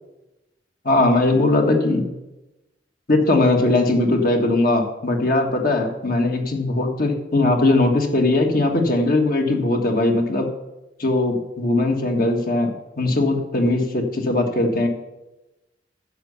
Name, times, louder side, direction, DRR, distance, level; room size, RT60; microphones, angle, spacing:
voice 1, 0.8-2.1 3.1-10.5 11.0-14.9, left 2 dB, 55° left, 3 dB, 1.7 m, -19 dB
10.5 x 6.9 x 6.9 m, 1.0 s
head